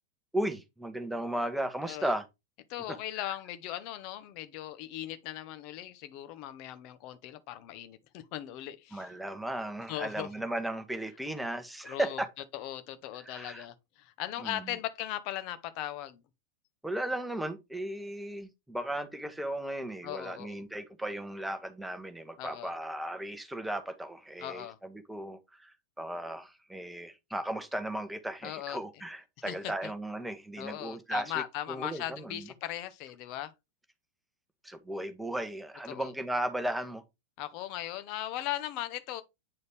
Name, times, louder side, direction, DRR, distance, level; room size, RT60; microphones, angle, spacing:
voice 1, 0.3-2.3 2.9-3.3 8.9-12.3 13.2-13.7 14.4-14.7 16.8-31.4 31.7-32.5 34.6-37.0, right 1 dB, 5° right, 1.1 m, -36 dB
voice 2, 2.7-9.1 9.9-10.3 11.8-12.2 12.5-16.2 20.0-20.6 22.4-22.7 24.4-24.8 28.4-28.8 29.5-29.6 30.6-33.5 35.9-36.1 37.4-39.2, left 13 dB, 45° left, 0.9 m, -38 dB
8.7 x 4.0 x 3.3 m
figure-of-eight pair, 90°, 0 cm